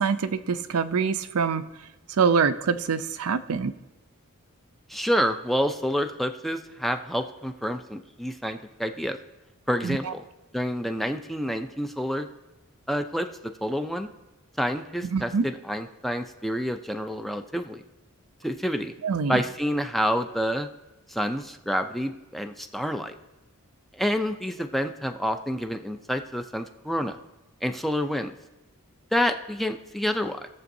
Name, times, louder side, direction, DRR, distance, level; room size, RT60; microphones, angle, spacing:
voice 1, 0.0-1.6 2.2-3.7 9.8-10.1 15.1-15.4 19.0-19.4, right 5 dB, 80° right, 11 dB, 0.5 m, -25 dB
voice 2, 4.9-9.2 9.7-10.2 10.5-12.3 12.9-13.3 13.6-14.1 14.6-17.8 18.4-18.9 19.3-20.7 21.1-23.2 23.9-27.2 27.6-28.3 29.1-30.5, equal, ahead, 7 dB, 0.4 m, -28 dB
18.0 x 6.9 x 2.7 m, 1.0 s
head